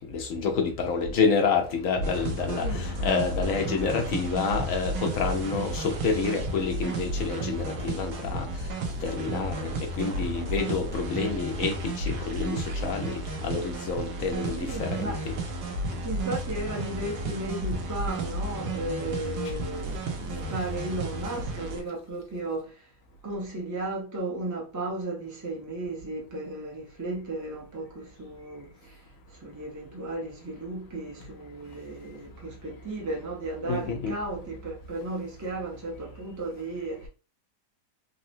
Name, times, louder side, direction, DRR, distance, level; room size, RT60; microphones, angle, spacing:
voice 1, 0.1-8.7 9.0-15.3 33.6-34.2, left 5 dB, 65° left, 0.9 m, -28 dB
sound 1, 2.0-21.8, right 2 dB, 75° right, 1.2 m, -32 dB
voice 2, 2.6-3.0 14.6-15.2 16.0-22.9 23.2-29.0 29.3-37.1, right 2 dB, 25° right, 0.4 m, -35 dB
3.7 x 2.0 x 2.6 m
omnidirectional pair, 1.8 m